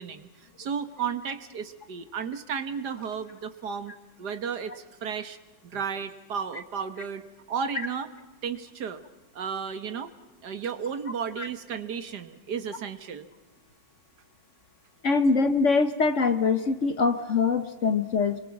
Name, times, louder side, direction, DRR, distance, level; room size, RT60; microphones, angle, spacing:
voice 1, 0.0-3.9 4.2-5.4 5.7-7.2 7.5-8.1 8.4-9.0 9.3-10.1 10.4-13.3, right 6 dB, 65° right, 11 dB, 1.9 m, -33 dB
voice 2, 15.0-18.4, left 4 dB, 50° left, 11 dB, 1.2 m, -23 dB
30.0 x 23.5 x 5.9 m, 1.2 s
omnidirectional pair, 1.9 m